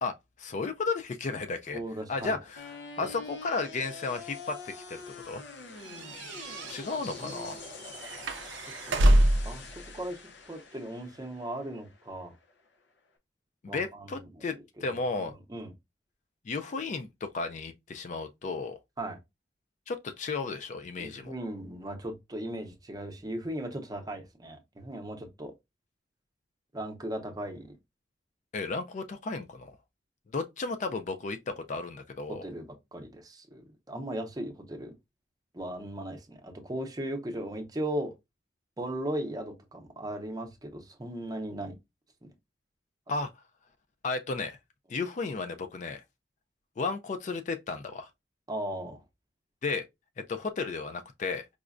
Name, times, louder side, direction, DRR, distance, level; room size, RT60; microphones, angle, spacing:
voice 1, 0.0-1.8 2.1-5.4 6.7-7.6 13.6-15.3 16.5-18.8 19.9-21.3 28.5-29.8 30.3-32.5 43.1-43.3 44.0-44.6 44.9-46.0 46.8-48.1 49.6-49.9 50.2-51.5, left 4 dB, 40° left, 0.3 m, -34 dB
voice 2, 1.7-2.4 3.0-3.1 7.2-7.7 8.9-10.2 10.5-12.3 13.7-14.4 14.9-15.7 19.0-19.2 21.0-25.5 26.7-27.7 32.3-34.9 35.5-38.1 38.8-41.7 42.2-42.3 48.5-49.0, right 1 dB, 20° right, 0.6 m, -37 dB
sound 1, 2.6-12.6, left 4 dB, 70° left, 0.7 m, -45 dB
sound 2, 5.8-9.6, right 1 dB, 75° right, 0.4 m, -26 dB
4.8 x 2.1 x 2.4 m
head